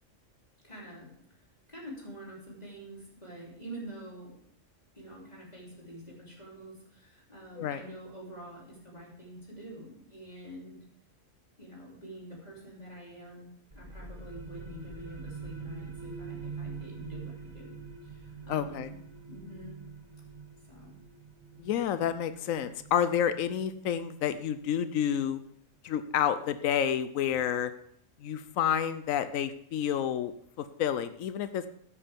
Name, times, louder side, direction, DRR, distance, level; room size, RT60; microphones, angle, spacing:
voice 1, 0.6-1.1 1.7-4.4 5.0-10.8 11.6-13.5 13.8-17.7 18.0-19.0 19.3-19.8 20.6-21.0, equal, 30° left, -4 dB, 3.5 m, -46 dB
sound 1, 13.7-25.1, right 5 dB, 30° right, 1.8 m, -45 dB
voice 2, 18.5-18.9 21.6-25.4 25.8-27.7 28.2-31.7, left 9 dB, 85° left, 12 dB, 1.1 m, -29 dB
12.5 x 9.8 x 3.5 m, 0.64 s
omnidirectional pair, 1.3 m